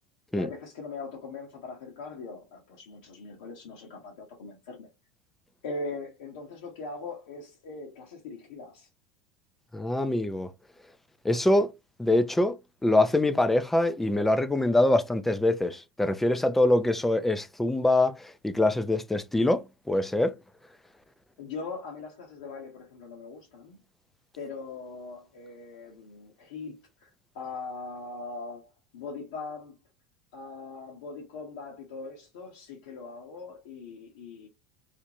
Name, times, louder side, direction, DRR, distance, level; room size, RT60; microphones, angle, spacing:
voice 1, 0.3-4.9 5.6-8.9 21.4-23.8 24.4-29.7 30.3-34.5, left 3 dB, 70° left, 0.7 m, -41 dB
voice 2, 9.7-10.5 11.2-11.7 12.0-12.6 12.8-20.4, left 1 dB, 5° left, 0.3 m, -24 dB
2.5 x 2.1 x 2.8 m
hypercardioid pair, 85°, 4 cm